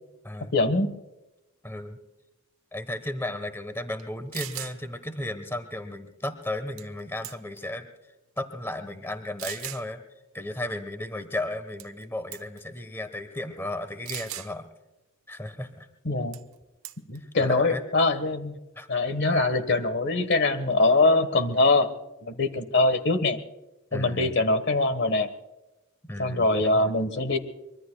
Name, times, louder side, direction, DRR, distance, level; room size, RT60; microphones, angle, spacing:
voice 1, 0.5-0.9 16.0-16.4 17.1-18.6 18.9-21.9 22.2-23.4 23.9-25.3 26.2-27.4, left 2 dB, 55° left, 11 dB, 1.3 m, -23 dB
voice 2, 1.6-2.0 2.7-7.9 8.4-10.0 10.3-14.7 15.3-15.9 17.2-17.8 18.7-18.9 23.9-24.3 26.0-26.9, left 1 dB, 10° left, 9 dB, 1.1 m, -34 dB
sound 1, 4.0-4.1 4.3-4.8 6.8-7.0 7.2-7.7 8.4-8.5 9.4-9.8 11.8-12.0 12.3-12.6 14.1-14.5 16.3-16.5 16.8-17.2, right 13 dB, 75° right, 1.1 m, -37 dB
24.5 x 23.0 x 2.3 m, 1.0 s
head